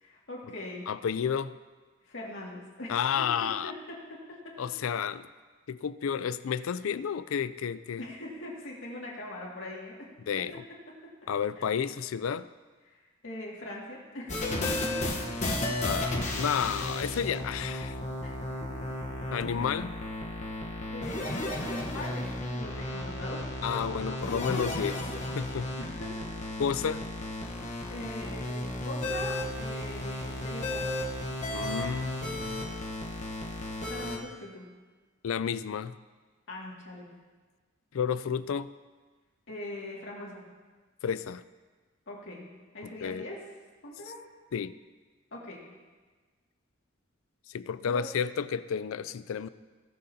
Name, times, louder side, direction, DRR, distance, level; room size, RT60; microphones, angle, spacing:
voice 1, 0.0-0.9 2.0-4.0 4.3-4.5 8.0-10.1 11.6-11.7 12.9-14.4 14.7-15.5 18.2-18.7 20.9-23.4 23.7-24.0 25.8-26.2 27.9-31.0 33.9-34.7 36.5-37.1 39.5-40.4 42.1-42.5 42.7-43.4 43.8-44.2 45.3-45.6 47.8-48.1, left 1 dB, 65° left, -4 dB, 2.2 m, -42 dB
voice 2, 0.9-1.6 2.9-3.7 4.6-5.3 5.7-8.0 10.3-10.6 11.3-12.5 15.8-18.0 19.3-19.9 23.6-25.0 25.4-25.7 26.6-27.0 31.5-32.7 35.2-35.9 37.9-38.7 41.0-41.4 43.0-43.3 44.5-44.7 47.5-49.5, left 7 dB, 80° left, 15 dB, 0.4 m, -31 dB
sound 1, 14.3-34.2, left 1 dB, 35° left, 1.1 m, -34 dB
19.5 x 6.6 x 2.8 m, 1.3 s
head